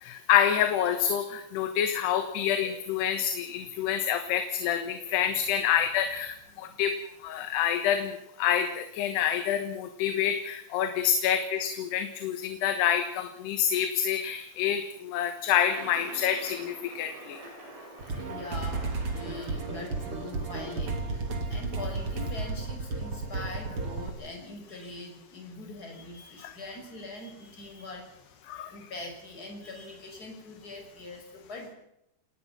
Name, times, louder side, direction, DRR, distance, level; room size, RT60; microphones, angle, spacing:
voice 1, 0.0-8.1 8.4-17.4 28.5-28.7, left 9 dB, 75° left, 8 dB, 3.3 m, -27 dB
sound 1, 15.7-20.7, right 1 dB, 80° right, 8.9 m, -47 dB
sound 2, 18.0-24.1, right 3 dB, 35° right, 3.2 m, -33 dB
voice 2, 18.1-31.7, left 2 dB, 20° left, 2 dB, 5.9 m, -43 dB
28.5 x 18.5 x 5.9 m, 0.82 s
omnidirectional pair, 4.9 m